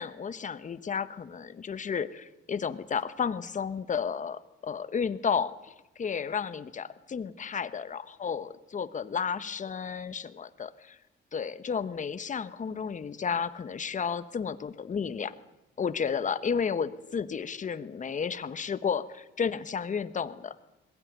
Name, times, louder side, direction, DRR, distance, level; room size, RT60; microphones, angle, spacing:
voice 1, 0.0-11.0 11.3-15.3 15.8-20.5, left 6 dB, 40° left, 14 dB, 1.2 m, -32 dB
21.5 x 16.5 x 9.4 m, 1.0 s
cardioid pair, 90°, 20 cm